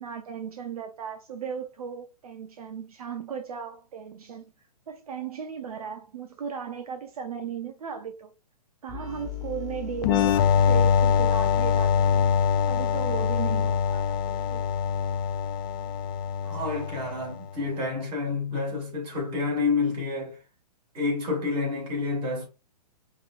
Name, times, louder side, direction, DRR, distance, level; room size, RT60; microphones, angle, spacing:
voice 1, 0.0-4.5 4.9-8.3 8.8-12.3 12.7-14.2 14.5-14.6, right 7 dB, 65° right, 0.6 m, -36 dB
sound 1, 8.9-16.5, left 13 dB, 20° left, 1.3 m, -40 dB
sound 2, 10.0-17.5, left 7 dB, 35° left, 0.4 m, -24 dB
voice 2, 16.4-20.4 20.9-22.5, left 3 dB, 25° right, 2.6 m, -29 dB
5.4 x 3.1 x 2.4 m
figure-of-eight pair, 120°, 21 cm